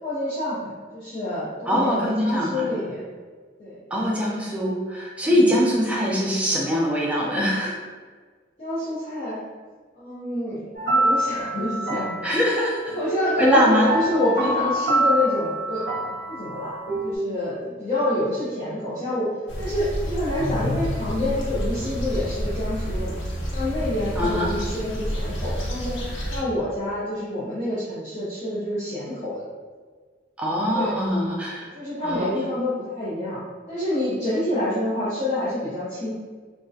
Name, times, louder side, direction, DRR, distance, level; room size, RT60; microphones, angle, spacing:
voice 1, 0.0-3.0 3.6-3.7 5.2-5.5 8.6-9.4 9.9-12.1 12.9-16.7 17.0-19.3 19.6-23.1 23.5-26.0 26.3-29.4 30.7-30.9 31.5-33.4 33.7-36.1, left 1 dB, 35° left, -12 dB, 0.6 m, -27 dB
voice 2, 1.7-2.7 3.9-7.7 12.2-13.0 13.4-13.9 24.2-24.5 30.4-31.7 32.0-32.3, equal, 5° right, -4 dB, 0.3 m, -22 dB
sound 1, 10.7-17.2, right 1 dB, 55° left, 1.2 m, -26 dB
sound 2, 19.5-26.4, equal, 80° left, 0.6 m, -29 dB
2.3 x 2.1 x 2.6 m, 1.5 s
head